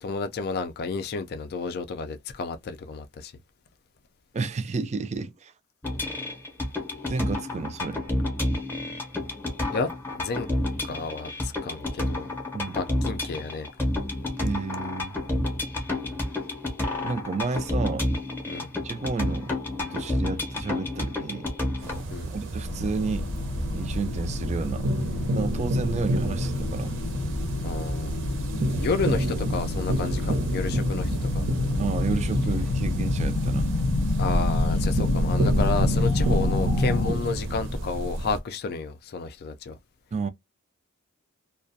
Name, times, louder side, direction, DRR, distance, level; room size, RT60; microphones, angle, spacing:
voice 1, 0.0-3.3 9.7-9.9 10.2-10.5 10.9-12.3 12.7-13.7 18.5-18.7 22.1-22.3 27.6-28.3 28.8-31.4 34.2-39.8, left 4 dB, 45° left, 0.4 m, -31 dB
voice 2, 4.3-5.5 7.1-8.0 12.5-12.8 14.4-15.2 17.0-18.1 18.8-19.5 19.8-21.5 22.3-23.3 23.7-24.9 25.3-27.0 28.5-28.9 31.8-33.7 40.1-40.3, right 4 dB, 30° right, 0.3 m, -31 dB
sound 1, 5.8-22.0, left 1 dB, 10° left, 0.7 m, -30 dB
sound 2, 21.8-38.4, right 1 dB, 60° right, 0.7 m, -29 dB
sound 3, 22.6-37.1, left 2 dB, 90° left, 0.6 m, -28 dB
2.4 x 2.1 x 2.6 m
head